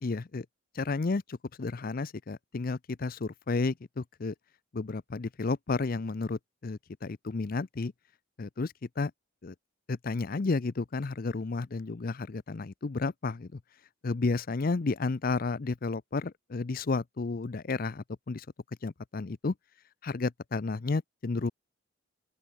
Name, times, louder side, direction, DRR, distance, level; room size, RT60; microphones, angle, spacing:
voice 1, 0.0-0.5 0.7-4.3 4.7-7.9 8.4-9.1 9.4-9.5 9.9-13.6 14.0-18.5 18.8-19.5 20.0-21.5, left 3 dB, 45° left, 0.5 m, -32 dB
open air
head